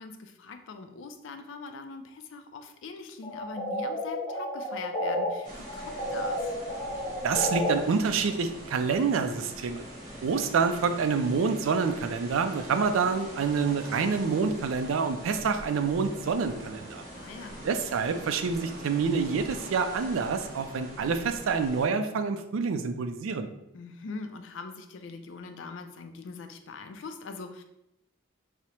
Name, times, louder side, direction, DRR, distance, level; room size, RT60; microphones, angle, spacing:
voice 1, 0.0-6.6 17.2-17.7 23.7-27.6, left 4 dB, 65° left, 7 dB, 0.4 m, -42 dB
sound 1, 3.2-5.3 5.6-7.7, equal, 15° left, 0.7 m, -31 dB
sound 2, 5.4-21.9, right 1 dB, 40° right, 1.0 m, -43 dB
voice 2, 7.2-9.8 10.2-17.0 17.6-23.5, right 5 dB, 85° right, 8 dB, 0.4 m, -27 dB
4.8 x 2.0 x 2.8 m, 0.86 s
head